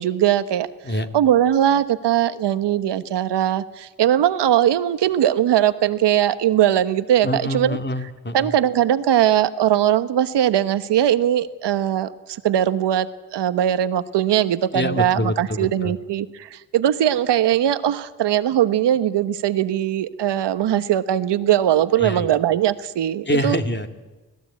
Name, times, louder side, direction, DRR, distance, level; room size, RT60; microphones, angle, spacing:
voice 1, 0.0-0.7 1.1-7.8 8.3-12.1 12.4-13.1 13.3-23.6, right 11 dB, 80° right, 12 dB, 1.1 m, -20 dB
voice 2, 7.2-8.5 14.7-15.9 22.0-22.3 23.3-23.9, left 1 dB, 25° left, 6 dB, 2.3 m, -25 dB
25.0 x 17.0 x 8.4 m, 1.2 s
supercardioid pair, 55°, 41 cm